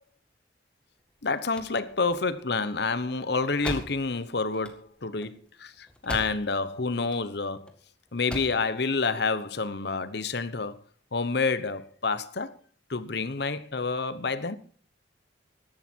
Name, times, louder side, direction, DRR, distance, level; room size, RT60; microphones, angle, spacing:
sound 1, 1.1-6.7 7.0-7.7 8.1-8.7, left 1 dB, 5° left, 1.9 m, -40 dB
voice 1, 1.2-7.7 8.1-10.8 11.1-12.6 12.9-14.6, left 4 dB, 65° left, 1.0 m, -28 dB
16.0 x 11.5 x 4.6 m
head